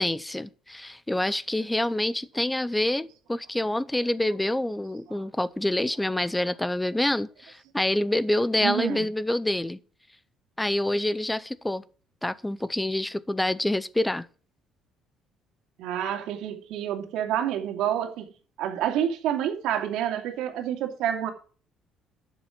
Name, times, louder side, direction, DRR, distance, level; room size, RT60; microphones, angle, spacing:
voice 1, 0.0-9.8 10.6-11.8 12.2-14.3, left 1 dB, 5° left, 0.5 m, -27 dB
voice 2, 8.6-9.0 15.8-18.3 18.6-21.3, right 10 dB, 75° right, 2.5 m, -28 dB
12.0 x 6.9 x 5.9 m
cardioid pair, 170°, 0 cm